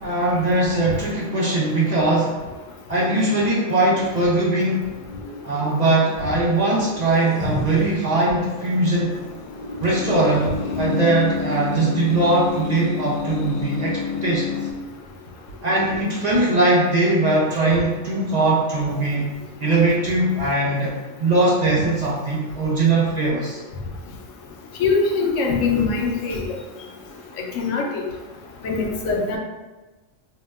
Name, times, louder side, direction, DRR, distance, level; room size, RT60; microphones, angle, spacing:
voice 1, 0.0-2.4 2.9-4.9 5.4-9.1 9.8-14.7 15.6-19.3 19.6-20.9 21.2-23.6, right 2 dB, 55° right, -5 dB, 0.5 m, -20 dB
sound 1, 3.1-14.7, left 6 dB, 70° left, 0.4 m, -31 dB
voice 2, 24.8-26.4 27.6-28.0 28.6-29.4, left 4 dB, 90° left, 0 dB, 1.0 m, -22 dB
2.8 x 2.1 x 3.3 m, 1.2 s
omnidirectional pair, 1.3 m